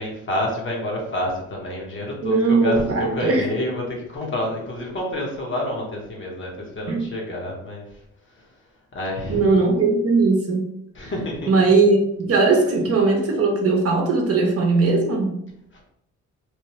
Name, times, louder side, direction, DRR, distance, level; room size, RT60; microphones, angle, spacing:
voice 1, 0.0-7.8 8.9-9.5 10.9-11.5, left 1 dB, 40° left, -1 dB, 1.1 m, -28 dB
voice 2, 2.2-3.5 6.9-7.1 9.3-10.7 11.0-11.1 11.5-15.3, right 3 dB, 50° right, 1 dB, 0.8 m, -19 dB
3.2 x 2.3 x 3.0 m, 0.76 s
cardioid pair, 90°, 30 cm